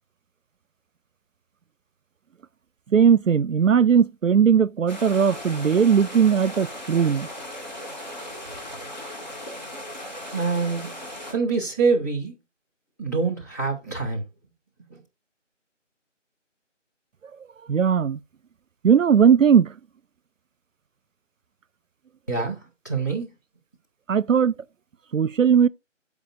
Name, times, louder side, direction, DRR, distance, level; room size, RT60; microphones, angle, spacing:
voice 1, 2.9-7.3 17.7-18.2 18.8-19.7 24.1-24.5 25.1-25.7, right 7 dB, 90° right, 0.5 m, -18 dB
sound 1, 4.9-11.3, left 1 dB, 35° left, 2.1 m, -37 dB
voice 2, 10.3-11.0 11.3-12.3 13.0-14.2 14.9-15.0 22.3-22.6 22.8-23.3, right 4 dB, 15° left, 1.1 m, -25 dB
13.0 x 5.0 x 2.5 m
figure-of-eight pair, 165°, 38 cm